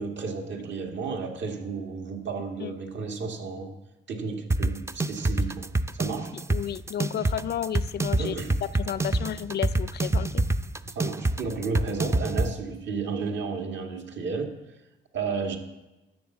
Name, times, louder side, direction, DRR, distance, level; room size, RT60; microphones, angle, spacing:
voice 1, 0.0-3.7 4.1-5.7 5.9-6.4 8.2-8.5 10.8-14.6 15.1-15.6, right 4 dB, 65° right, 3 dB, 2.0 m, -32 dB
sound 1, 4.5-12.5, right 2 dB, 15° right, 0.4 m, -26 dB
voice 2, 6.3-8.4 8.8-10.4, left 10 dB, 55° left, 17 dB, 0.5 m, -32 dB
10.5 x 7.1 x 7.3 m, 1.0 s
cardioid pair, 90°, 20 cm